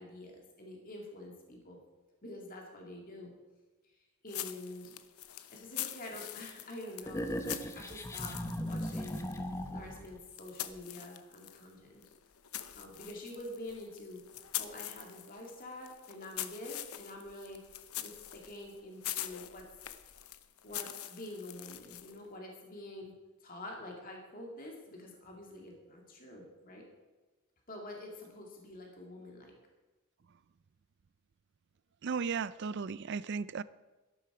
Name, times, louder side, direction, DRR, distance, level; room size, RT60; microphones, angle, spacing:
voice 1, 0.0-1.8 2.2-3.3 4.2-5.0 5.5-9.3 9.7-12.0 12.7-14.2 14.6-17.6 18.0-19.7 20.6-23.1 23.4-26.8 27.7-29.5, left 1 dB, 40° left, 0 dB, 2.3 m, -47 dB
sound 1, 4.3-11.7 12.0-22.3, left 13 dB, 80° left, 0.8 m, -44 dB
sound 2, 7.1-10.1, equal, 10° left, 0.8 m, -38 dB
voice 2, 32.0-33.6, right 5 dB, 50° right, 18 dB, 0.4 m, -35 dB
12.5 x 11.5 x 4.9 m, 1.2 s
head